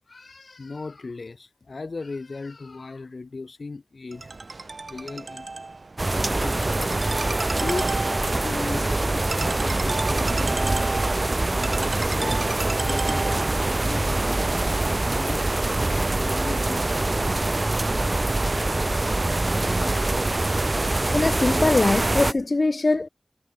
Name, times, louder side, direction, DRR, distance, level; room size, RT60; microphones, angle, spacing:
voice 1, 0.1-4.3 4.6-5.5 6.4-7.0 7.6-7.9 8.4-11.0 11.6-14.8 15.2-17.4 21.0-21.1 21.8-22.0, left 3 dB, 80° left, 2.9 m, -37 dB
Ringtone, 4.1-13.7, right 3 dB, 70° right, 2.9 m, -34 dB
sound 1, 6.0-22.3, right 2 dB, 45° right, 0.8 m, -24 dB
voice 2, 21.1-23.1, left 2 dB, 60° left, 0.3 m, -22 dB
wide cardioid pair, 45°, 0 cm